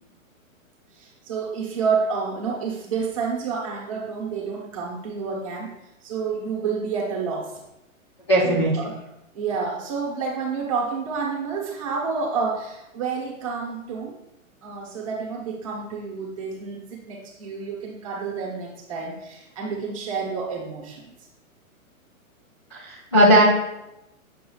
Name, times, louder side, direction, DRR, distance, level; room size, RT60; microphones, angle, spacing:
voice 1, 0.9-5.7 6.0-7.6 8.4-8.9 9.3-14.1 14.6-21.1, right 5 dB, 25° right, -2 dB, 1.0 m, -29 dB
voice 2, 8.3-8.7 22.7-23.5, right 1 dB, 20° left, -8 dB, 0.5 m, -17 dB
6.8 x 6.7 x 2.3 m, 0.90 s
hypercardioid pair, 180°, 41 cm